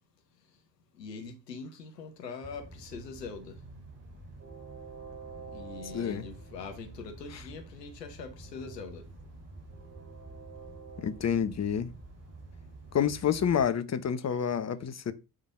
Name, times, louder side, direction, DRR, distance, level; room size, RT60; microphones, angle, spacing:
voice 1, 1.0-3.6 5.5-9.0, left 4 dB, 85° left, 1.1 m, -43 dB
Train, 2.4-13.7, right 3 dB, 30° right, 4.2 m, -47 dB
voice 2, 5.9-6.2 11.0-11.9 12.9-15.1, left 8 dB, 35° left, 1.0 m, -28 dB
9.6 x 3.9 x 3.7 m
figure-of-eight pair, 45°, 48 cm